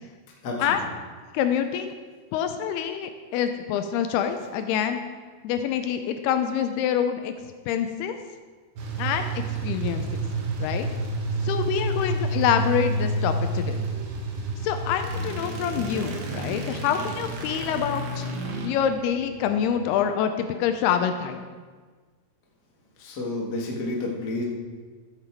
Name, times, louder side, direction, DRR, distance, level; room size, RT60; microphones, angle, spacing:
voice 1, 0.4-0.8 23.0-24.4, left 2 dB, 60° left, -2 dB, 1.0 m, -30 dB
voice 2, 1.3-1.9 2.3-5.0 5.4-7.3 7.7-8.2 9.0-10.2 10.6-10.9 11.4-13.9 14.6-18.3 18.6-21.4, left 8 dB, 80° left, 8 dB, 2.5 m, -26 dB
sound 1, 8.8-19.9, right 2 dB, 80° right, 3.6 m, -29 dB
14.0 x 7.4 x 4.5 m, 1.5 s
omnidirectional pair, 4.8 m